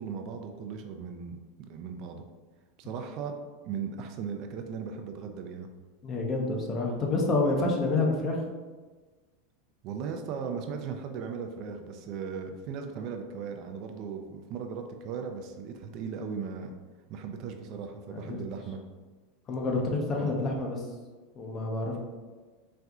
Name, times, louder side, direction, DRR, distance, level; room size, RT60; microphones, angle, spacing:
voice 1, 0.0-1.4 1.7-2.2 2.8-3.3 3.6-5.7 9.8-16.7 17.1-18.8 20.2-20.3, right 6 dB, 45° right, 4 dB, 0.3 m, -37 dB
voice 2, 6.0-8.4 18.1-18.4 19.5-20.8 21.4-22.0, left 2 dB, 30° left, 0 dB, 0.6 m, -28 dB
4.2 x 2.5 x 2.3 m, 1.3 s
supercardioid pair, 135°, 0 cm